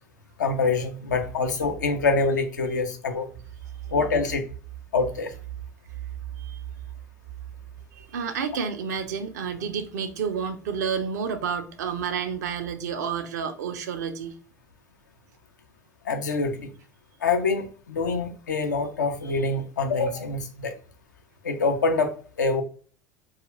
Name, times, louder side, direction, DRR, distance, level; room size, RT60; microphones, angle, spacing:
voice 1, 0.4-3.3 3.9-4.4 4.9-5.3 16.1-16.7 17.2-20.7 21.4-22.1 22.4-22.6, left 4 dB, 85° left, 0.5 m, -25 dB
voice 2, 8.0-14.4, right 6 dB, 75° right, 0.5 m, -30 dB
2.4 x 2.3 x 2.9 m
hypercardioid pair, 75°, 9 cm